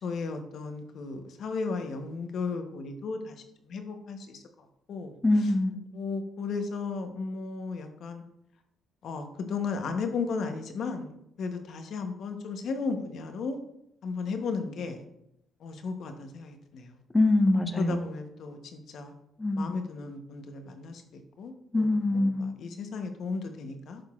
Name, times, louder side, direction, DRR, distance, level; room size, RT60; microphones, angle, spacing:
voice 1, 0.0-3.4 3.7-4.4 4.9-5.1 5.9-8.2 9.0-11.1 11.4-13.6 14.0-15.0 15.6-16.9 17.8-18.6 18.9-19.1 19.5-21.0 21.4-22.3 22.6-24.0, left 4 dB, 65° left, 6 dB, 0.9 m, -34 dB
voice 2, 5.2-5.8 17.1-18.0 19.4-19.7 21.7-22.5, left 2 dB, 20° left, 7 dB, 0.8 m, -24 dB
11.5 x 3.9 x 2.4 m, 0.80 s
supercardioid pair, 70°, 0 cm